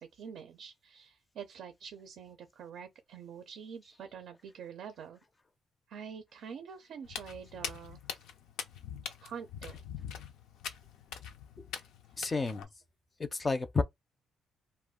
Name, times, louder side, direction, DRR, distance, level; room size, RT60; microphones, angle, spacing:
voice 1, 0.0-5.2 5.9-8.0 9.2-9.8, right 7 dB, 75° right, 0.4 m, -46 dB
Walk footsteps, 7.0-12.6, left 7 dB, 90° left, 0.4 m, -43 dB
voice 2, 12.2-12.7 13.2-13.8, left 3 dB, 25° left, 0.4 m, -30 dB
2.3 x 2.1 x 3.6 m
cardioid pair, 90°, 0 cm